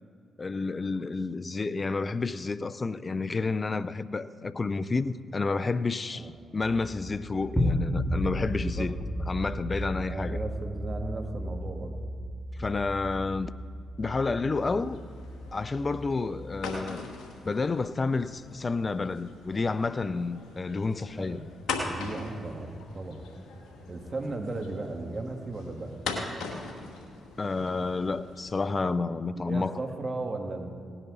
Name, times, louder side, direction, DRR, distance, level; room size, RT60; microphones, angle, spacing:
voice 1, 0.4-8.9 9.3-10.4 12.6-13.5 14.0-15.0 15.5-17.0 17.4-21.5 27.4-29.7, left 3 dB, 35° left, 0.5 m, -30 dB
sound 1, 7.0-16.8, equal, 10° left, 2.2 m, -34 dB
voice 2, 8.6-8.9 10.0-12.0 21.1-21.4 21.8-23.3 23.9-26.0 29.3-30.7, right 2 dB, 40° right, 2.0 m, -36 dB
sound 2, 14.5-28.7, left 3 dB, 75° left, 1.9 m, -41 dB
18.0 x 10.0 x 4.1 m
hypercardioid pair, 45°, 0 cm